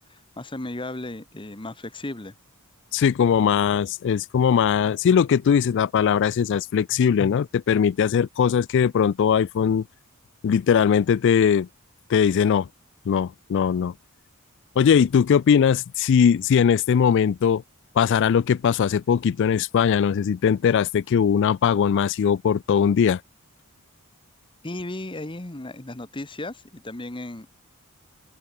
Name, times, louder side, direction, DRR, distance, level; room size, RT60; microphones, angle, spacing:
voice 1, 0.1-2.3 24.6-27.5, left 2 dB, 25° left, 1.2 m, -35 dB
voice 2, 2.9-9.8 10.4-11.7 12.1-12.7 13.1-13.9 14.8-17.6 18.0-23.2, left 7 dB, 55° left, 0.3 m, -20 dB
head